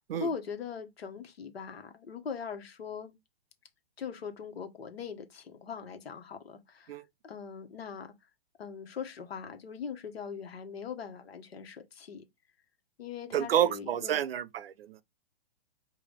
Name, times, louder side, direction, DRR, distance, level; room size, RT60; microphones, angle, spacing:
voice 1, 0.1-3.2 4.0-7.0 7.2-8.1 8.6-12.2 13.0-14.2, left 6 dB, 85° left, 1.3 m, -41 dB
voice 2, 13.3-15.0, right 10 dB, 75° right, 0.6 m, -29 dB
4.9 x 2.6 x 3.4 m
hypercardioid pair, 140°, 30 cm